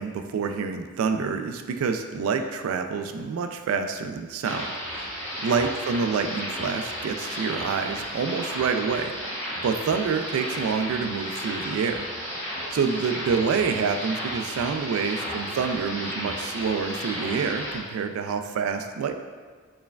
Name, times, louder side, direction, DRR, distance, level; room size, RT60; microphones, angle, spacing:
voice 1, 0.0-4.7 5.4-9.1 9.6-12.1 12.7-19.1, right 5 dB, 85° right, 7 dB, 0.3 m, -27 dB
sound 1, 4.4-17.8, equal, 10° left, 1.0 m, -33 dB
4.4 x 3.3 x 2.2 m, 1.5 s
head